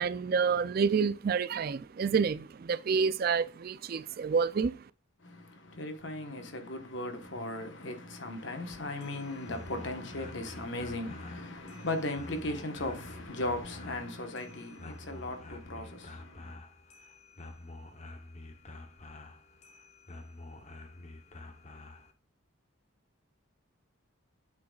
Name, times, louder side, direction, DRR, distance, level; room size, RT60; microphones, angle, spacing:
voice 1, 0.0-4.8, right 6 dB, 45° right, 0.3 m, -28 dB
voice 2, 5.2-16.6, left 1 dB, 55° left, 1.2 m, -37 dB
sound 1, 9.0-22.1, left 2 dB, 35° left, 0.8 m, -48 dB
8.5 x 6.2 x 2.4 m
head